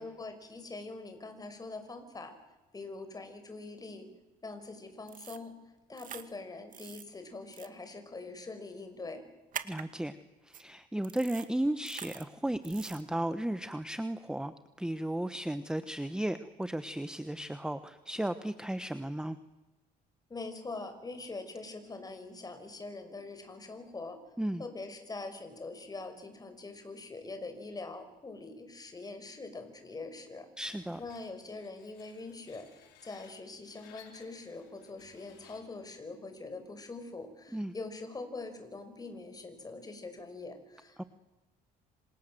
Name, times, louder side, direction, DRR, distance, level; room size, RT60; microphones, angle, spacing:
voice 1, 0.0-2.4 2.7-4.1 4.4-5.5 5.9-9.2 20.3-24.2 24.6-30.5 31.0-41.1, left 3 dB, 20° left, 7 dB, 5.8 m, -43 dB
sound 1, 5.1-5.4 6.0-6.2 6.7-7.0 7.5-7.7 9.5-9.8 10.5-10.6 11.0-11.5 11.8-12.2 12.6-13.0, right 9 dB, 50° right, 2.2 m, -43 dB
voice 2, 9.6-10.2 10.4-19.4 24.4-24.6 30.6-31.0 37.5-37.7 41.0-41.1, right 1 dB, 5° right, 11 dB, 1.2 m, -34 dB
Screech, 30.6-35.9, left 9 dB, 90° left, 5.4 m, -60 dB
27.5 x 27.0 x 7.8 m, 1.1 s
cardioid pair, 110°, 17 cm